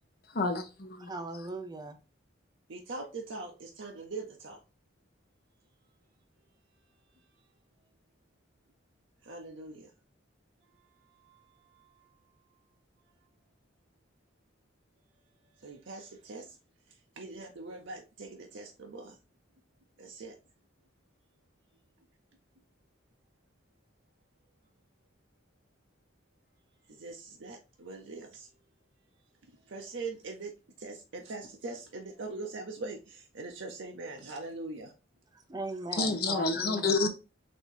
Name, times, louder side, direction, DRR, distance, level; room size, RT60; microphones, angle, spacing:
voice 1, 0.3-1.1 35.9-37.1, left 3 dB, 50° left, 0.8 m, -29 dB
voice 2, 1.0-2.0 35.3-37.0, right 2 dB, 20° right, 0.5 m, -39 dB
voice 3, 2.7-4.6 9.2-9.9 11.2-11.4 11.7-11.8 15.6-16.5 17.2-19.2 20.0-20.4 26.9-28.5 29.7-30.5 30.8-34.9, right 3 dB, 75° right, 0.7 m, -42 dB
4.3 x 2.7 x 4.4 m
head